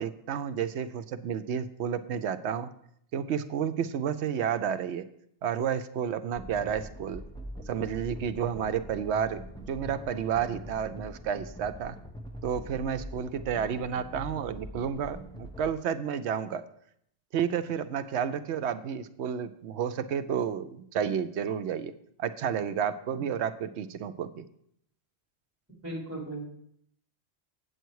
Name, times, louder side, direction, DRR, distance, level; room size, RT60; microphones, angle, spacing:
voice 1, 0.0-2.7 3.1-5.0 5.4-7.2 7.7-9.4 9.7-12.0 12.4-16.6 17.3-21.9 22.2-24.4, right 8 dB, 85° right, 10 dB, 0.9 m, -31 dB
sound 1, 6.4-15.7, equal, 5° left, 0.8 m, -43 dB
voice 2, 25.8-26.5, right 1 dB, 10° right, -3 dB, 3.0 m, -36 dB
8.2 x 8.0 x 4.7 m, 0.70 s
omnidirectional pair, 1.1 m